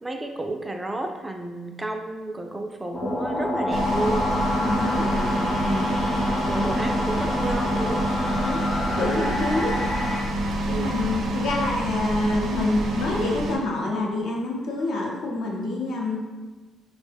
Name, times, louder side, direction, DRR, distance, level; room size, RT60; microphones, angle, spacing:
voice 1, 0.0-4.3 5.0-5.9 6.5-8.1 8.8-10.0 10.7-11.0, right 2 dB, 15° right, 4 dB, 0.3 m, -32 dB
sound 1, 2.9-10.2, left 1 dB, 30° left, 1.0 m, -27 dB
sound 2, 3.7-13.6, right 1 dB, 85° right, 0.6 m, -27 dB
voice 2, 4.6-5.1 8.4-8.6 8.9-9.8 10.6-16.2, left 2 dB, 80° left, -2 dB, 0.7 m, -27 dB
3.6 x 2.1 x 3.3 m, 1.3 s
cardioid pair, 95°, 0 cm